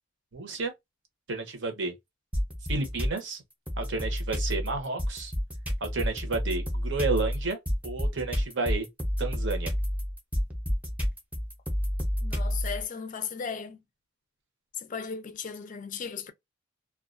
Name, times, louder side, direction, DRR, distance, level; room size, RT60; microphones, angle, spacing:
voice 1, 0.3-0.7 1.3-1.9 2.7-3.4 3.8-5.3 5.8-7.6 7.8-8.9 9.2-9.7, right 3 dB, 70° right, 0.8 m, -31 dB
sound 1, 2.3-3.2 3.7-12.9, equal, 10° right, 0.6 m, -29 dB
voice 2, 12.2-13.8 14.8-16.3, left 6 dB, 40° left, 0.3 m, -36 dB
2.2 x 2.2 x 2.5 m
head